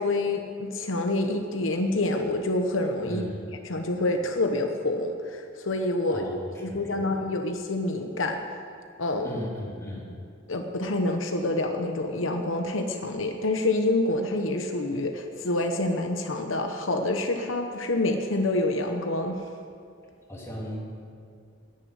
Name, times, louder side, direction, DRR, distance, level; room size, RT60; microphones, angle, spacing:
voice 1, 0.0-3.2 3.7-8.4 9.0-9.4 10.5-19.4, left 2 dB, 75° left, 4 dB, 1.0 m, -27 dB
voice 2, 3.1-3.4 6.1-7.2 9.2-10.1 20.3-20.8, equal, 15° left, -4 dB, 2.9 m, -37 dB
10.0 x 9.8 x 9.6 m, 2.3 s
head